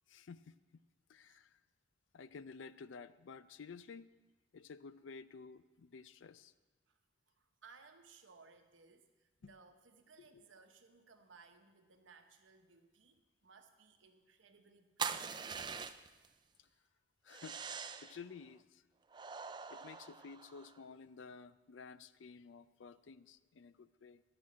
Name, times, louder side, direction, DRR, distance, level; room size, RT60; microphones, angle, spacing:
voice 1, 0.1-0.5 1.1-1.6 2.1-4.1 4.5-6.5 9.4-9.5 10.2-10.4 16.6-16.7 17.2-17.6 18.0-18.8 19.7-24.2, left 5 dB, 75° left, 15 dB, 0.4 m, -53 dB
voice 2, 7.3-15.4, right 5 dB, 80° right, 5 dB, 1.1 m, -62 dB
sound 1, 15.0-16.3 17.3-18.2 19.1-20.8, right 6 dB, 25° right, 0.3 m, -43 dB
11.5 x 6.1 x 8.4 m, 1.2 s
head